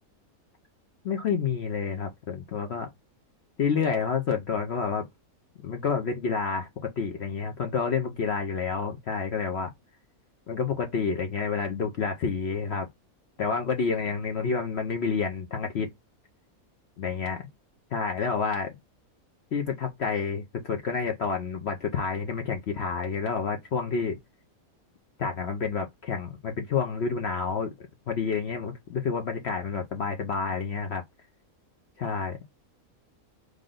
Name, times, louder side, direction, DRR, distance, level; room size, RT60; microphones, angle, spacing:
voice 1, 1.0-2.9 3.6-5.0 5.6-9.7 10.5-12.9 13.4-15.9 17.0-17.4 17.9-18.7 19.5-24.2 25.2-27.7 28.1-31.0 32.0-32.4, left 5 dB, 55° left, 0.8 m, -29 dB
3.3 x 2.6 x 3.6 m
omnidirectional pair, 1.5 m